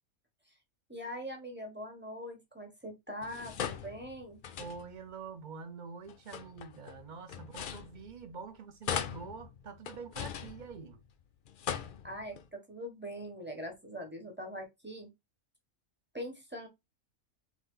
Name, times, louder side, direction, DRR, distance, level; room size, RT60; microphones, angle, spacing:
voice 1, 0.9-4.4 12.0-15.1 16.1-16.7, equal, 10° right, 1.2 m, -42 dB
sound 1, 3.2-5.1 6.1-8.4 8.8-11.1 11.5-12.5, left 8 dB, 75° left, 0.4 m, -40 dB
voice 2, 4.6-11.0, right 5 dB, 45° right, 0.6 m, -46 dB
4.0 x 3.2 x 3.8 m
omnidirectional pair, 1.5 m